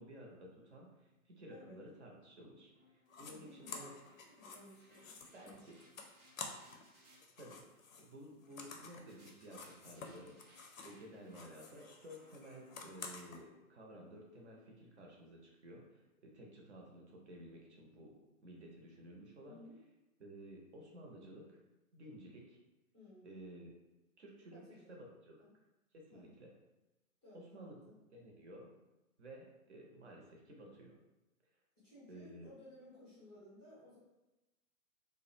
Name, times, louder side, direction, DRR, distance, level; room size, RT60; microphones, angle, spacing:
voice 1, 0.0-3.9 5.3-5.7 7.3-10.5 10.8-16.0 16.3-18.1 18.4-19.6 20.2-21.6 21.9-22.6 23.2-23.7 24.2-24.6 24.9-25.4 25.9-26.5 27.3-28.7 29.2-30.9 32.1-32.5, right 1 dB, 55° right, -1 dB, 0.6 m, -54 dB
sound 1, 1.0-7.2 9.1-15.3, equal, 90° right, 0.8 m, -68 dB
voice 2, 1.5-1.8 3.1-5.7 19.5-19.8 22.9-23.3 24.5-25.0 25.4-25.5 26.1-26.3 27.2-27.8 31.8-34.0, left 1 dB, 5° left, -12 dB, 0.5 m, -58 dB
sound 2, 3.1-3.3 3.7-6.9 7.2-11.0 11.3-13.4, left 4 dB, 70° left, 0.5 m, -51 dB
2.3 x 2.0 x 2.6 m, 1.0 s
figure-of-eight pair, 125°, 43 cm